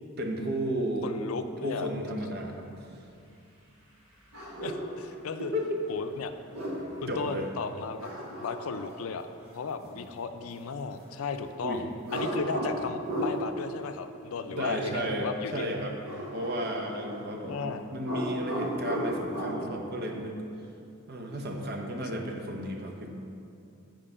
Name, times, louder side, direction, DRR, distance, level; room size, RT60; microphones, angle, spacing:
voice 1, 0.2-1.2 1.6-2.9 5.4-5.8 7.1-7.5 9.8-10.1 11.6-11.8 14.5-16.0 16.3-20.4 21.1-23.1, equal, 50° right, 2 dB, 0.8 m, -33 dB
voice 2, 1.0-1.9 4.6-5.5 5.9-6.3 7.0-8.1 8.4-9.3 9.5-11.9 12.1-15.7 16.9-17.1 17.4-17.8, left 5 dB, 85° left, 9 dB, 0.4 m, -35 dB
sound 1, 4.3-4.9 6.3-7.0 8.0-9.1 12.0-13.4 16.0-17.6 17.9-19.6, right 1 dB, 90° right, 1.6 m, -34 dB
7.6 x 4.6 x 5.5 m, 2.6 s
head